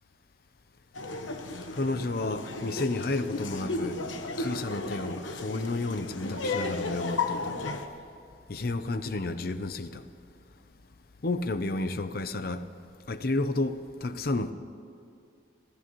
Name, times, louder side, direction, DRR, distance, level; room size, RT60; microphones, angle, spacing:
Laughter, 0.9-7.9, left 3 dB, 85° left, 1.1 m, -34 dB
voice 1, 1.7-4.0 4.4-7.6 8.5-10.0 11.2-12.6 13.1-14.5, left 2 dB, 50° left, 0.7 m, -31 dB
28.5 x 14.0 x 3.1 m
head